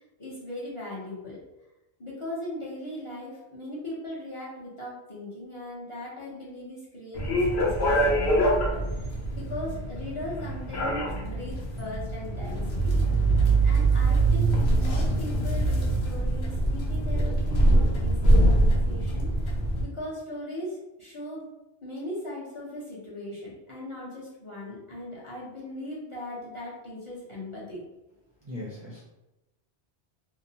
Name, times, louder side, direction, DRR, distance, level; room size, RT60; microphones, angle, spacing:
voice 1, 0.0-1.4 2.0-13.0 13.6-19.5 19.8-21.5 21.8-27.8, left 1 dB, 35° left, -7 dB, 0.6 m, -39 dB
sound 1, 7.1-19.8, right 2 dB, 75° left, 0.9 m, -24 dB
voice 2, 28.5-29.0, left 1 dB, 35° right, -8 dB, 0.4 m, -38 dB
2.7 x 2.0 x 2.7 m, 0.97 s
omnidirectional pair, 1.1 m